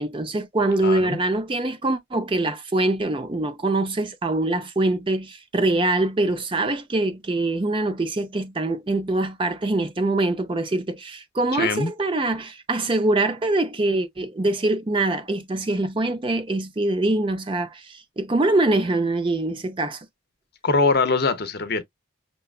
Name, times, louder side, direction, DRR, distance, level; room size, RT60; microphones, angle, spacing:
voice 1, 0.0-20.1, right 2 dB, 25° right, 0.4 m, -24 dB
voice 2, 0.8-1.2 11.6-11.9 20.6-21.8, left 3 dB, 50° left, 0.6 m, -22 dB
5.7 x 2.3 x 2.4 m
head